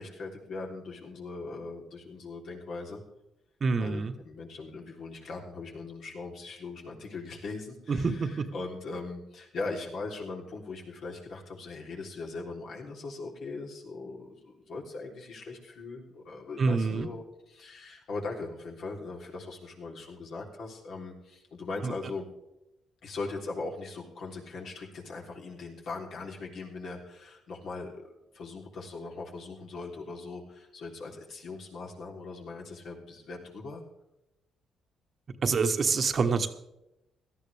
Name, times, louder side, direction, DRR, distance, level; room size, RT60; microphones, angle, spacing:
voice 1, 0.0-3.0 3.8-22.3 23.0-33.8, left 3 dB, 65° left, -1 dB, 3.4 m, -40 dB
voice 2, 3.6-4.1 7.9-8.4 16.6-17.1 21.8-21.9 35.4-36.5, right 4 dB, 45° right, 8 dB, 1.3 m, -26 dB
17.5 x 13.0 x 3.4 m, 0.89 s
cardioid pair, 90°, 0 cm